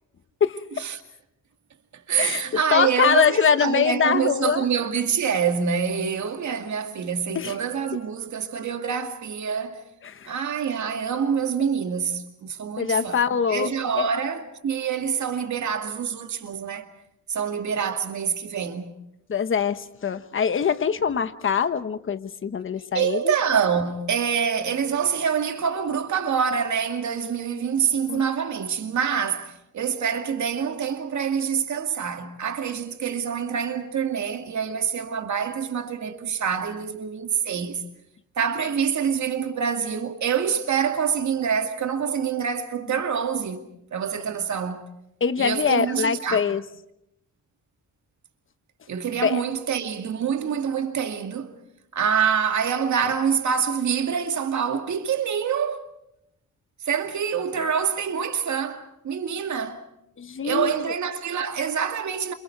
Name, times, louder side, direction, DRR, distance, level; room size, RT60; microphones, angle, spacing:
voice 1, 0.4-0.8 2.2-2.4 2.7-4.6 7.3-7.6 10.0-10.3 12.8-14.1 19.3-23.3 28.1-28.2 45.2-46.6 49.2-49.4 60.2-60.9, left 7 dB, 40° left, 1.2 m, -23 dB
voice 2, 1.9-9.8 10.3-16.9 17.3-18.9 22.9-37.8 38.4-44.8 45.4-46.4 48.9-51.6 51.9-55.9 56.9-59.8 60.4-62.3, right 7 dB, 65° right, 2.3 m, -26 dB
28.5 x 27.5 x 4.7 m
wide cardioid pair, 135°, 32 cm